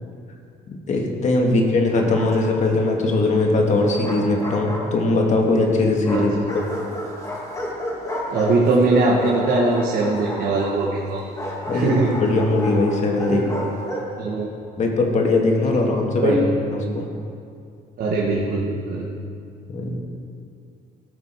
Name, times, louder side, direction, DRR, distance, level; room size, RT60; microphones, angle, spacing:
voice 1, 0.7-6.6 11.7-13.4 14.8-16.4 16.7-17.1 19.7-20.0, left 2 dB, 45° left, 1 dB, 1.8 m, -20 dB
Bark, 1.9-2.8 3.7-5.3 6.0-14.2, left 1 dB, 20° left, 2.1 m, -32 dB
voice 2, 8.3-11.3 11.7-12.2 13.3-13.5 14.2-14.5 16.2-16.4 18.0-19.0, right 3 dB, 60° right, -3 dB, 1.5 m, -21 dB
17.0 x 6.1 x 4.6 m, 2.4 s
cardioid pair, 110°, 17 cm